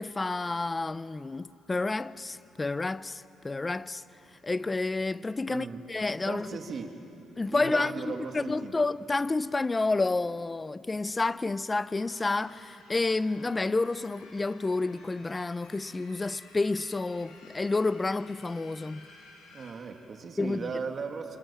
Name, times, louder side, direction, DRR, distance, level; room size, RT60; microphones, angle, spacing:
voice 1, 0.0-4.0 4.4-6.5 7.4-19.1 20.4-20.7, left 3 dB, 20° left, 0.6 m, -30 dB
voice 2, 5.5-5.8 6.2-7.0 7.5-8.8 19.5-21.4, right 5 dB, 50° right, 2.7 m, -37 dB
sound 1, 11.9-19.7, left 3 dB, 90° left, 6.4 m, -54 dB
27.0 x 26.5 x 7.4 m
cardioid pair, 90°, 0 cm